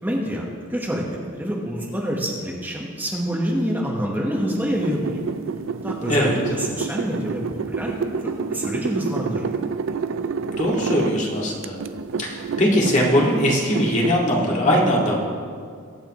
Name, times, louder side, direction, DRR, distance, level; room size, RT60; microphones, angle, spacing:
voice 1, 0.0-1.0 1.3-5.2 5.8-9.5, equal, 10° right, -3 dB, 1.3 m, -27 dB
sound 1, 4.7-11.2 11.6-14.1, right 5 dB, 70° right, 0.5 m, -29 dB
voice 2, 10.6-11.8 12.2-15.2, equal, 35° left, -3 dB, 2.2 m, -20 dB
22.5 x 8.8 x 3.1 m, 2.1 s
head